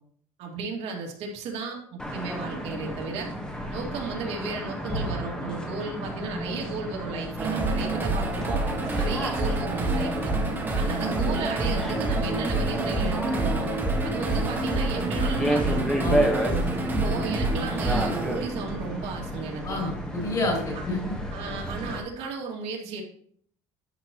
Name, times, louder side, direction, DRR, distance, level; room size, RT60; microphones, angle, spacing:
voice 1, 0.4-3.3 3.7-8.6 8.9-10.3 10.7-13.7 14.0-15.8 16.9-20.0 20.7-20.8 21.3-23.0, right 5 dB, 60° right, 0 dB, 2.3 m, -34 dB
sound 1, 2.0-22.0, equal, 5° left, 1.4 m, -32 dB
sound 2, 7.4-19.4, right 2 dB, 15° right, 1.7 m, -27 dB
voice 2, 16.0-16.3 19.6-21.1, left 2 dB, 30° left, -1 dB, 3.3 m, -29 dB
11.0 x 7.7 x 3.0 m, 0.63 s
cardioid pair, 170°, 12 cm